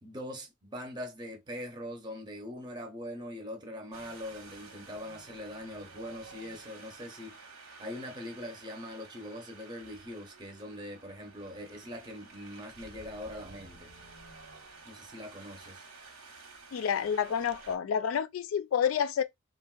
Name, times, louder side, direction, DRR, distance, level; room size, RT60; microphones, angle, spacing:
voice 1, 0.0-7.5 7.8-13.9 14.8-15.9, left 1 dB, 20° right, 0.7 m, -42 dB
Wind, 3.9-17.8, right 3 dB, 85° right, 1.2 m, -51 dB
voice 2, 16.7-19.2, left 7 dB, 70° left, 0.3 m, -29 dB
3.5 x 2.2 x 2.3 m
head